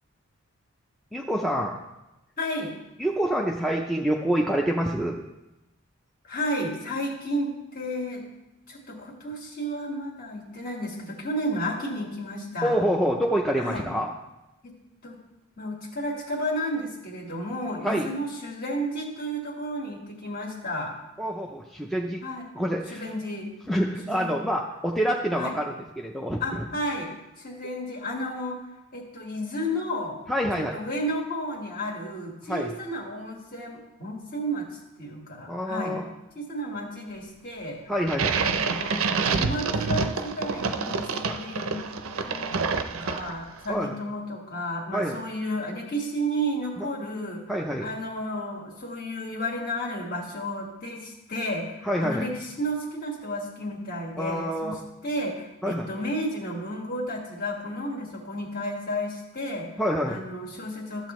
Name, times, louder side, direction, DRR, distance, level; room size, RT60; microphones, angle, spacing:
voice 1, 1.1-1.8 3.0-5.2 12.6-14.1 17.8-18.1 21.2-22.2 22.5-23.1 23.7-26.6 30.3-30.8 32.5-32.7 35.5-36.1 37.9-38.4 41.3-41.4 43.7-43.9 44.9-45.2 46.8-46.9 47.5-47.9 51.8-52.3 54.2-54.7 55.6-55.9 59.8-60.2, equal, ahead, -1 dB, 0.4 m, -27 dB
voice 2, 2.4-2.7 6.2-8.2 8.7-12.7 13.6-13.8 14.6-14.8 15.0-15.2 15.6-20.9 22.2-22.5 22.9-23.5 24.1-24.4 25.3-25.6 26.4-30.2 30.5-34.7 35.0-36.0 36.3-37.8 38.4-41.8 42.2-47.4 47.8-54.8 55.0-59.7 60.1-61.1, equal, 40° left, 0 dB, 1.7 m, -32 dB
sound 1, 38.1-43.6, right 5 dB, 70° right, 0.5 m, -27 dB
13.5 x 7.5 x 3.1 m, 0.99 s
head